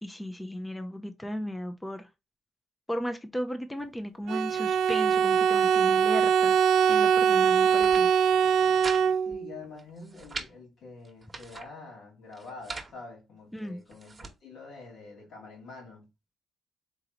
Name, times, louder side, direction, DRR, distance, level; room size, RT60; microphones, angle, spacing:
voice 1, 0.0-2.1 2.9-6.6 6.9-8.1 13.5-13.8, equal, 10° left, 0.5 m, -35 dB
Bowed string instrument, 4.3-9.5, right 7 dB, 80° right, 0.4 m, -22 dB
sound 1, 7.6-8.0 8.4-9.0 9.3-9.4 9.8-10.5 11.0-11.7 12.3-12.9 13.6-14.3, right 3 dB, 25° right, 1.1 m, -41 dB
voice 2, 9.2-16.1, left 3 dB, 70° left, 2.4 m, -46 dB
3.9 x 3.8 x 2.9 m
cardioid pair, 90°, 0 cm